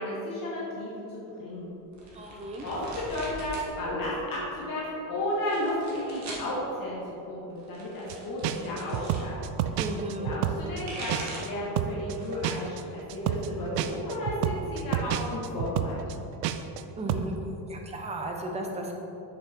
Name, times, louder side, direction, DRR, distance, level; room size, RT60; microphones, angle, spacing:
voice 1, 0.0-1.7 2.1-2.8 3.1-9.4 10.2-16.0, left 1 dB, 40° left, -7 dB, 1.9 m, -33 dB
sound 1, 1.9-3.7 4.0-4.7 5.3-6.5 7.5-9.3 10.5-11.6 12.1-12.5 12.9-13.9, right 2 dB, 35° right, 1.7 m, -42 dB
voice 2, 2.1-2.7 9.8-10.4 17.0-17.4 17.7-18.9, right 1 dB, 15° right, 1 dB, 0.8 m, -35 dB
sound 2, 8.1-8.2 8.4-11.5 11.8-16.8 17.1-17.3, right 11 dB, 55° right, 0.5 m, -29 dB
7.6 x 6.6 x 4.4 m, 3.0 s
cardioid pair, 150°, 49 cm